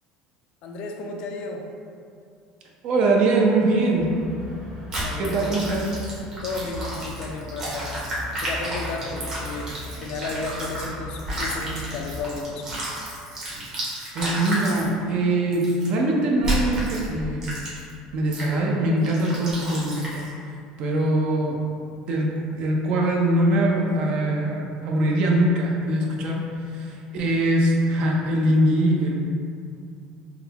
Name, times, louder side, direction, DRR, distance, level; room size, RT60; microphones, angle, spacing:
voice 1, 0.6-1.7 5.0-5.7 6.4-7.9 8.4-12.7, left 3 dB, 55° left, 2 dB, 0.4 m, -33 dB
voice 2, 2.8-4.1 5.2-5.9 14.1-17.4 18.1-20.2 20.8-21.6 22.1-22.3 22.5-26.4 26.7-29.1, right 1 dB, 50° right, -1 dB, 0.5 m, -22 dB
sound 1, 3.9-12.4, left 1 dB, 75° right, 1.1 m, -38 dB
sound 2, 4.9-10.9 11.2-14.9 15.5-15.9 16.4-17.0 17.4-17.9 18.3-18.5 19.0-20.3, right 1 dB, 30° right, 0.9 m, -31 dB
3.8 x 2.2 x 2.8 m, 2.5 s
cardioid pair, 145°, 2 cm